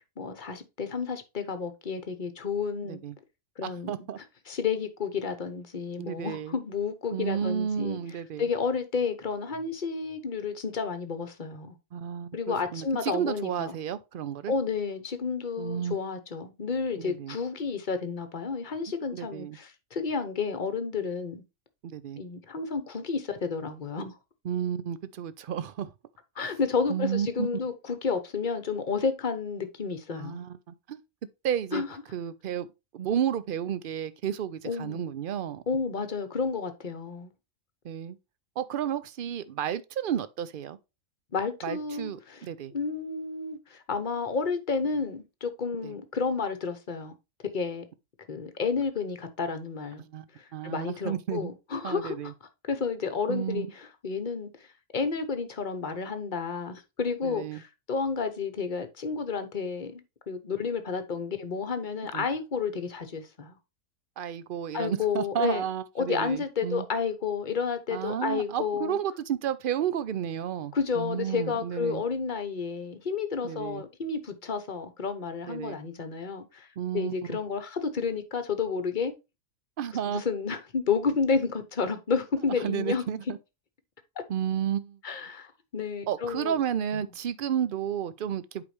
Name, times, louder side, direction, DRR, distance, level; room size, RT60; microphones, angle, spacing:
voice 1, 0.2-3.0 3.6-4.0 4.5-8.0 8.4-11.8 12.3-13.7 14.5-21.4 22.2-24.2 26.4-30.4 31.7-31.9 34.6-35.0 35.7-37.3 41.3-42.4 42.7-47.1 47.5-47.8 48.3-50.0 50.4-52.3 52.7-54.5 54.9-63.6 64.7-65.6 66.0-69.0 70.7-76.7 76.9-79.1 80.0-83.0 85.0-86.6 86.9-87.0, left 5 dB, 40° left, 1.0 m, -31 dB
voice 2, 2.8-3.1 3.6-4.2 6.0-6.5 7.1-8.5 11.9-14.5 15.6-16.0 17.0-17.4 19.1-19.6 21.8-22.2 24.4-25.9 26.9-27.5 30.1-31.0 31.4-31.8 32.1-32.7 32.9-35.6 37.8-38.2 38.6-40.8 41.6-42.7 45.8-45.9 50.0-51.5 51.8-52.3 53.3-53.7 57.2-57.6 62.1-62.2 64.2-66.9 67.9-72.0 73.4-73.8 75.5-75.8 76.8-77.4 79.8-80.2 82.6-83.4 84.3-85.0 86.1-88.6, right 9 dB, 60° right, 0.6 m, -32 dB
8.2 x 5.1 x 3.2 m
omnidirectional pair, 1.4 m